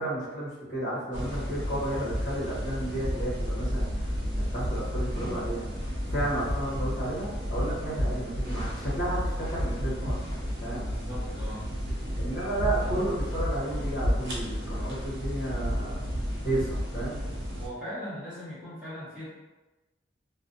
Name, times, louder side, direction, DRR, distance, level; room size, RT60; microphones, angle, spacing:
voice 1, 0.0-4.1 4.3-5.7 6.1-10.2 10.6-10.9 12.2-16.0 16.4-17.2, right 1 dB, 50° left, -7 dB, 1.0 m, -32 dB
sound 1, 1.1-17.7, equal, 70° right, 0.8 m, -31 dB
voice 2, 10.7-11.7 17.6-19.3, equal, 5° right, -12 dB, 1.1 m, -39 dB
2.4 x 2.1 x 2.5 m, 1.1 s
head